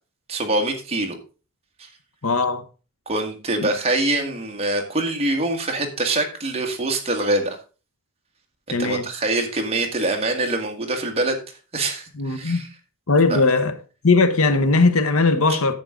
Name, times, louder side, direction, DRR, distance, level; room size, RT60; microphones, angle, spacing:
voice 1, 0.3-1.2 3.1-7.6 8.7-11.4 11.7-12.7 13.3-13.4, right 2 dB, 25° right, 1.8 m, -24 dB
voice 2, 2.2-2.6 3.6-3.7 8.7-9.1 12.1-12.6 13.1-13.8 14.0-15.7, left 3 dB, 65° left, 1.0 m, -19 dB
10.5 x 8.0 x 3.7 m
head